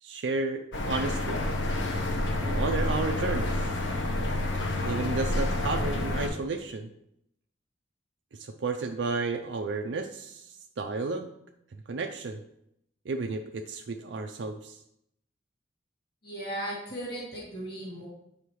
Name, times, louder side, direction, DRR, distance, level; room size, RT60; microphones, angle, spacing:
voice 1, 0.0-1.4 2.4-3.7 4.9-6.9 8.3-11.3 11.9-12.4 13.1-14.8, right 3 dB, 70° right, 5 dB, 0.4 m, -32 dB
sound 1, 0.7-6.3, left 1 dB, 80° left, 1.1 m, -29 dB
voice 2, 16.2-18.1, right 1 dB, 55° left, -5 dB, 2.1 m, -36 dB
8.3 x 5.6 x 3.1 m, 0.78 s
head